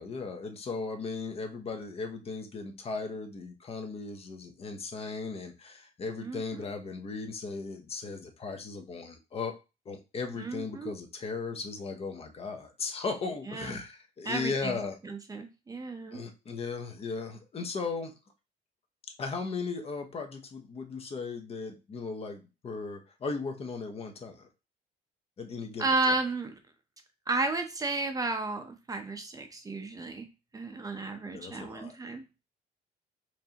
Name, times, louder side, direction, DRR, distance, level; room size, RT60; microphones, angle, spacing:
voice 1, 0.0-9.6 9.9-15.0 16.1-18.1 19.2-24.5 25.4-25.9 31.3-32.0, left 4 dB, 35° left, 6 dB, 0.8 m, -37 dB
voice 2, 6.2-6.7 10.4-10.9 13.5-13.8 14.2-14.8 15.0-16.2 25.8-26.6 27.3-30.3 30.5-32.2, right 3 dB, 20° right, 6 dB, 0.6 m, -33 dB
4.5 x 2.7 x 2.8 m, 0.29 s
cardioid pair, 110°, 17 cm